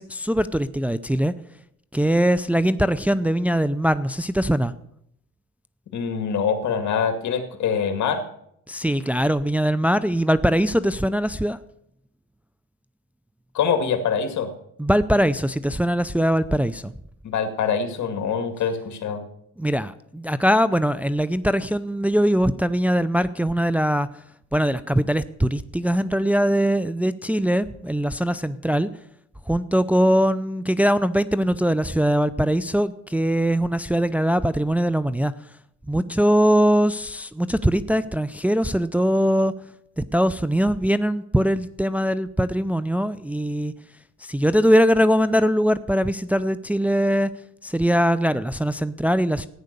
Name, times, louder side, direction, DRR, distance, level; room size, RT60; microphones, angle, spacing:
voice 1, 0.0-1.3 1.9-4.7 8.7-11.6 14.8-16.9 19.6-24.1 24.5-28.9 29.5-35.3 35.9-39.5 40.0-43.7 44.2-47.3 47.6-49.5, equal, 5° right, 13 dB, 0.5 m, -21 dB
voice 2, 5.9-8.2 13.5-14.5 17.2-19.2, left 6 dB, 70° left, 7 dB, 2.2 m, -24 dB
14.5 x 9.6 x 6.7 m, 0.75 s
cardioid pair, 90°, 30 cm